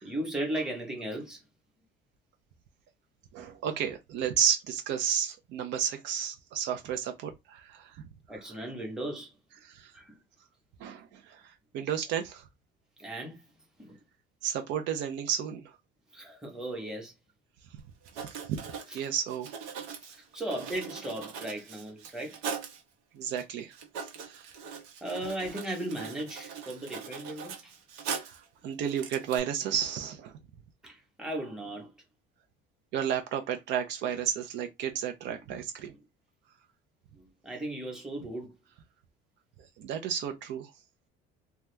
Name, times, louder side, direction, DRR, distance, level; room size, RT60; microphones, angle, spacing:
voice 1, 0.0-1.4 8.3-9.4 9.9-10.2 13.0-13.5 13.8-14.0 16.1-17.1 18.9-19.0 20.1-22.4 25.0-27.7 30.8-31.9 35.9-36.0 37.1-38.5, right 1 dB, 5° right, 1.0 m, -37 dB
voice 2, 3.3-8.0 9.6-9.9 10.8-12.4 14.4-15.7 18.1-18.6 18.9-19.6 23.1-23.8 24.2-24.5 28.2-30.3 32.9-35.9 39.8-40.7, right 8 dB, 60° right, 0.6 m, -32 dB
Writing, 17.8-17.9 18.0-22.8 23.4-23.5 23.7-28.5 28.8-29.4, right 6 dB, 90° right, 1.0 m, -41 dB
2.8 x 2.3 x 3.3 m
cardioid pair, 150°, 21 cm